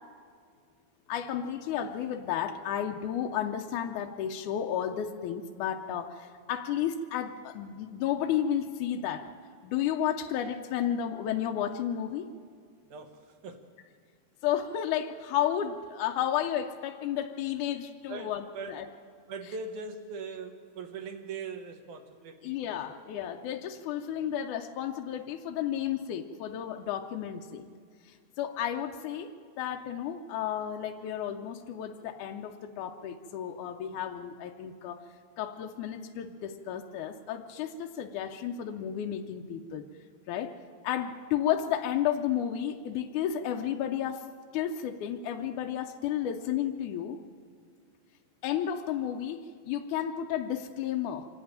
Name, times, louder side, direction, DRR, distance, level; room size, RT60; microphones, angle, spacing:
voice 1, 1.1-9.3 9.6-12.3 14.4-18.9 22.4-27.7 28.1-35.0 35.4-39.8 40.3-40.5 40.8-44.3 44.5-47.2 48.4-51.3, left 10 dB, 75° left, 3 dB, 1.9 m, -32 dB
voice 2, 12.9-13.7 18.1-18.7 19.3-22.8, right 4 dB, 65° right, 6 dB, 2.2 m, -41 dB
25.5 x 11.5 x 8.9 m, 2.1 s
omnidirectional pair, 4.3 m